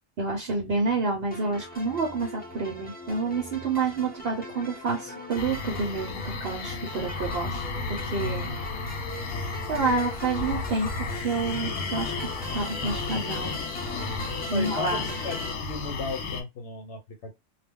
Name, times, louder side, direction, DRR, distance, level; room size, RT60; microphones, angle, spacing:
voice 1, 0.2-7.6 7.9-9.0 9.7-10.9 11.2-13.6 14.5-15.0, right 3 dB, 55° right, 0.9 m, -29 dB
sound 1, 1.3-15.5, left 1 dB, 10° left, 0.6 m, -40 dB
sound 2, 5.4-16.4, left 4 dB, 90° left, 1.0 m, -33 dB
voice 2, 8.1-8.6 14.5-15.0 15.2-17.3, left 4 dB, 65° left, 1.0 m, -35 dB
2.3 x 2.2 x 3.5 m
omnidirectional pair, 1.3 m